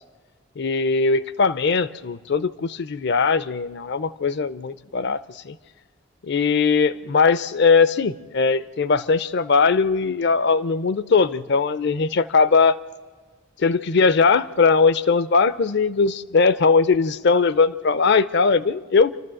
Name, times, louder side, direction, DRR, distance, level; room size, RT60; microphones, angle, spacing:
voice 1, 0.6-5.6 6.3-12.8 13.6-19.1, left 4 dB, 60° left, 17 dB, 0.6 m, -20 dB
27.5 x 12.5 x 7.7 m, 1.5 s
head